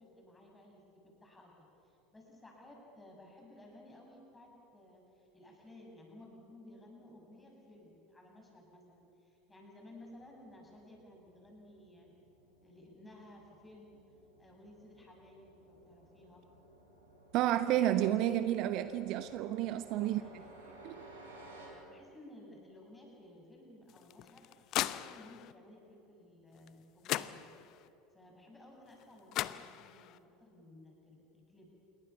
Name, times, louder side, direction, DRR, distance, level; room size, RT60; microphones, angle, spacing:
voice 1, 0.0-12.1 12.6-14.0 14.4-16.4 19.9-20.8 21.7-24.5 24.8-27.6 28.1-31.7, left 1 dB, 10° left, 7.8 m, -56 dB
sound 1, 9.9-21.7, right 2 dB, 70° right, 5.9 m, -58 dB
voice 2, 17.3-20.2 20.8-21.0, right 12 dB, 50° right, 0.9 m, -30 dB
sound 2, 23.9-25.5 26.7-26.8 27.0-27.9 29.0-29.1 29.3-30.2, left 14 dB, 45° left, 0.7 m, -38 dB
28.0 x 22.0 x 7.2 m
figure-of-eight pair, 75°, 0 cm